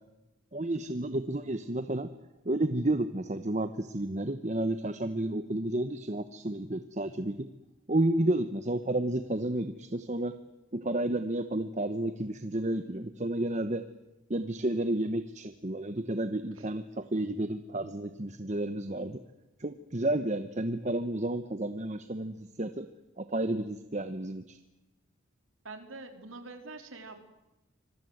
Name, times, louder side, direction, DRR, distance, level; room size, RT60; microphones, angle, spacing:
voice 1, 0.5-2.1 2.4-7.5 7.9-10.3 10.7-13.8 14.3-19.2 19.6-22.9 23.2-24.6, right 1 dB, 35° right, 10 dB, 1.0 m, -31 dB
voice 2, 25.6-27.2, right 3 dB, 75° right, 7 dB, 3.9 m, -45 dB
26.0 x 22.0 x 8.0 m, 0.97 s
head